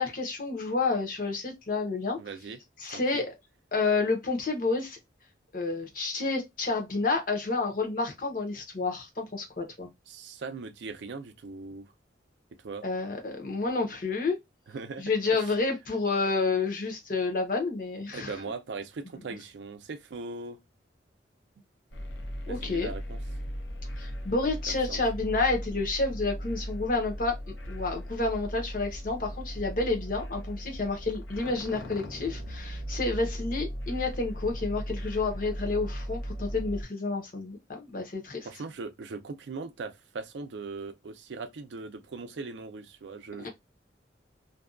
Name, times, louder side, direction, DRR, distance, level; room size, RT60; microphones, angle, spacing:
voice 1, 0.0-2.2 2.8-3.3 3.7-5.0 5.5-9.9 12.8-14.4 15.0-18.3 22.5-22.9 24.0-27.4 27.7-38.5 43.4-43.5, left 3 dB, 45° left, 0.8 m, -29 dB
voice 2, 2.2-2.6 2.9-3.2 10.1-11.9 12.5-12.9 14.7-15.5 18.1-20.6 22.5-23.2 24.7-25.0 38.4-43.5, right 4 dB, 75° right, 0.4 m, -40 dB
sound 1, 21.9-36.8, equal, 90° left, 0.7 m, -37 dB
2.6 x 2.2 x 2.4 m
head